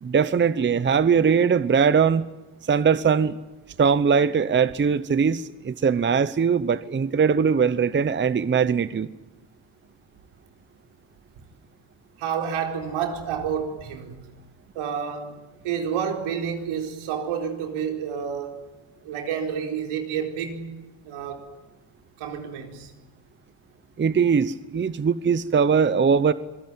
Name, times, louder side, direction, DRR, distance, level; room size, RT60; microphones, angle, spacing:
voice 1, 0.0-2.3 2.7-3.4 3.8-9.1 24.0-26.3, right 6 dB, 25° right, 0.8 m, -21 dB
voice 2, 12.2-14.2 14.7-18.6 19.0-20.7 21.0-21.6 22.2-22.9, right 7 dB, 80° right, 4.5 m, -29 dB
26.0 x 17.5 x 9.4 m
cardioid pair, 90°, 49 cm